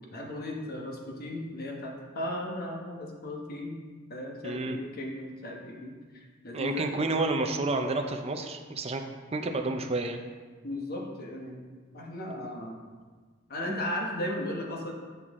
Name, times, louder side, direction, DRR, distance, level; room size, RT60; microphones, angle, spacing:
voice 1, 0.1-3.8 4.1-6.9 10.6-11.6 11.9-12.8 13.5-14.9, left 1 dB, 50° left, 0 dB, 1.2 m, -36 dB
voice 2, 4.4-4.8 6.5-9.1 9.3-10.2, right 2 dB, 30° right, 4 dB, 0.6 m, -30 dB
8.3 x 5.8 x 3.7 m, 1.5 s
head